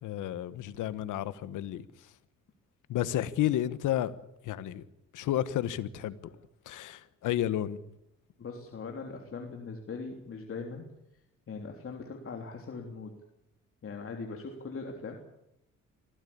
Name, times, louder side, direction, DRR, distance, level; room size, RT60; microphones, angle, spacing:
voice 1, 0.0-1.8 2.9-4.1 4.4-4.8 5.1-6.2 6.6-7.8, left 12 dB, 85° left, 15 dB, 1.4 m, -31 dB
voice 2, 8.4-10.9 11.5-13.1 13.8-15.2, left 4 dB, 45° left, 2 dB, 3.3 m, -40 dB
24.5 x 16.5 x 8.7 m, 0.83 s
cardioid pair, 90°, 30 cm